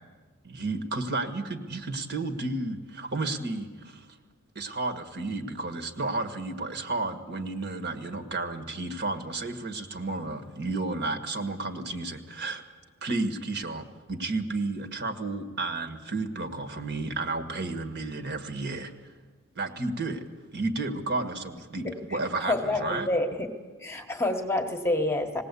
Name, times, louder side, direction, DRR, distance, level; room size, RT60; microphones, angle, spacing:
voice 1, 0.4-4.1 4.5-12.6 13.0-19.1 19.5-20.2 20.5-23.1, right 2 dB, 50° right, 6 dB, 1.6 m, -32 dB
voice 2, 22.4-23.5 23.8-25.4, left 2 dB, 10° left, 4 dB, 1.2 m, -28 dB
20.0 x 17.5 x 8.4 m, 1.4 s
head